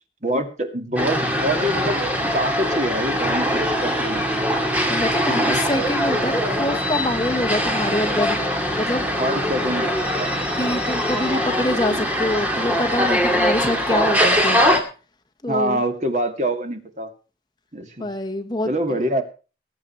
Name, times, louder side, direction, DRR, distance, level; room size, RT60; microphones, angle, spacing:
voice 1, 0.2-2.0 2.3-4.4 5.3-5.8 9.2-10.3 11.9-12.1 15.5-17.1 17.7-18.1 18.7-19.2, right 1 dB, 40° right, 6 dB, 2.2 m, -25 dB
sound 1, 1.0-14.8, equal, 10° right, 2.4 m, -22 dB
voice 2, 4.9-8.4 8.8-9.1 10.5-14.6 15.4-15.8 18.0-19.0, left 1 dB, 25° left, 7 dB, 1.3 m, -25 dB
20.5 x 8.5 x 4.4 m, 0.34 s
head